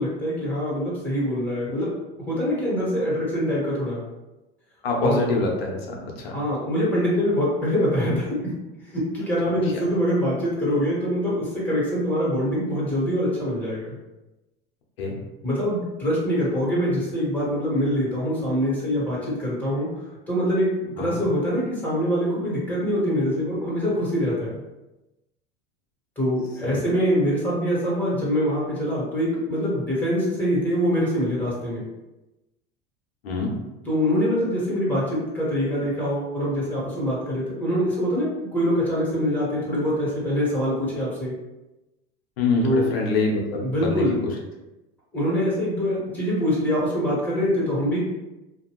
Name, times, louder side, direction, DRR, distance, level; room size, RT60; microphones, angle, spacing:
voice 1, 0.0-1.9 2.3-4.0 5.0-5.2 6.3-8.6 8.8-13.9 15.4-19.9 20.3-24.6 26.2-31.8 33.8-41.3 42.6-42.9 43.6-44.2 45.1-48.0, equal, 5° left, -7 dB, 1.4 m, -24 dB
voice 2, 4.8-6.4 15.0-15.1 21.0-21.2 26.6-26.8 33.2-33.5 42.4-44.0, left 3 dB, 85° left, -1 dB, 0.8 m, -25 dB
2.5 x 2.3 x 3.0 m, 1.0 s
hypercardioid pair, 100°, 30 cm